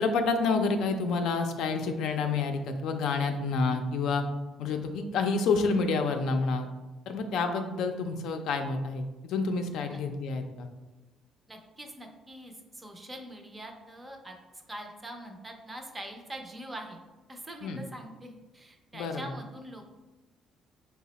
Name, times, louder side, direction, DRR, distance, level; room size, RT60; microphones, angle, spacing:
voice 1, 0.0-4.2 4.6-6.7 7.1-10.7 17.6-17.8 18.9-19.2, left 4 dB, 75° left, 5 dB, 0.4 m, -28 dB
voice 2, 11.5-14.4 14.7-17.0 17.3-20.0, right 1 dB, 15° right, 3 dB, 0.5 m, -43 dB
4.7 x 2.0 x 4.0 m, 1.1 s
cardioid pair, 140°, 0 cm